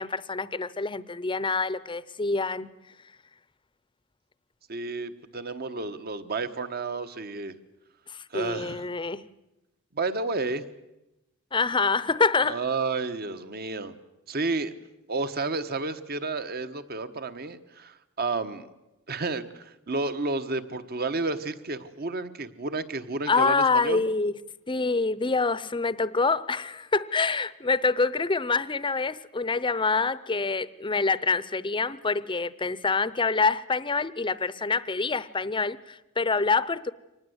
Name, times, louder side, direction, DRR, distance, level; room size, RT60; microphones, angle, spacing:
voice 1, 0.0-2.7 8.1-9.3 11.5-12.6 23.3-24.3 24.7-36.9, left 4 dB, 25° left, 0.7 m, -26 dB
voice 2, 4.7-7.5 8.3-8.8 9.9-10.6 12.4-14.0 14.3-14.7 15.1-18.7 19.1-24.0, right 3 dB, 50° right, 1.2 m, -31 dB
24.5 x 19.0 x 8.0 m
head